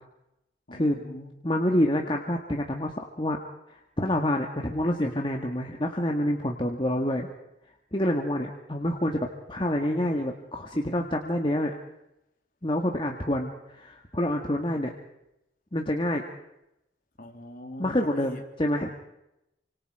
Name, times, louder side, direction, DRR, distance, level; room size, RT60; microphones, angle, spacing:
voice 1, 0.7-1.4 17.2-18.4 18.8-19.0, left 1 dB, 45° left, 3 dB, 3.5 m, -43 dB
voice 2, 1.4-2.9 3.2-3.4 3.7-7.3 7.9-11.7 12.6-14.9 15.7-16.2 17.8-18.9, left 1 dB, 25° left, 2 dB, 1.8 m, -27 dB
28.0 x 26.5 x 4.9 m, 0.87 s
head